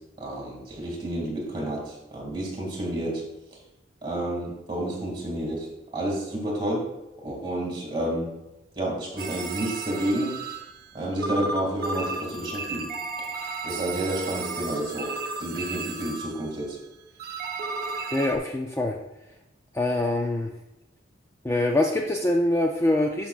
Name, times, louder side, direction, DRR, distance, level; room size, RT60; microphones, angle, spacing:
voice 1, 0.2-3.2 4.0-5.7 5.9-6.8 7.2-8.3 8.8-10.4 10.9-12.9 13.6-15.1 15.4-16.8, right 1 dB, 25° right, -2 dB, 2.2 m, -30 dB
sound 1, 9.2-10.9 11.2-16.8 17.2-18.4, right 3 dB, 50° right, 0.8 m, -33 dB
voice 2, 18.1-19.0 19.7-20.5 21.4-23.3, left 1 dB, 15° left, 1 dB, 0.4 m, -24 dB
11.0 x 5.8 x 2.4 m, 0.95 s
head